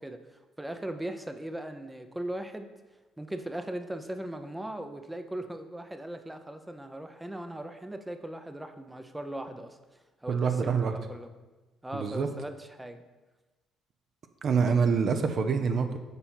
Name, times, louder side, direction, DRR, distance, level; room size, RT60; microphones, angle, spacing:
voice 1, 0.0-2.7 3.2-11.3 11.8-13.0, right 1 dB, 10° right, 8 dB, 0.6 m, -39 dB
voice 2, 10.3-10.9 11.9-12.3 14.4-16.0, right 5 dB, 55° right, 7 dB, 0.7 m, -26 dB
6.9 x 4.3 x 5.6 m, 1.2 s
hypercardioid pair, 60°, 0 cm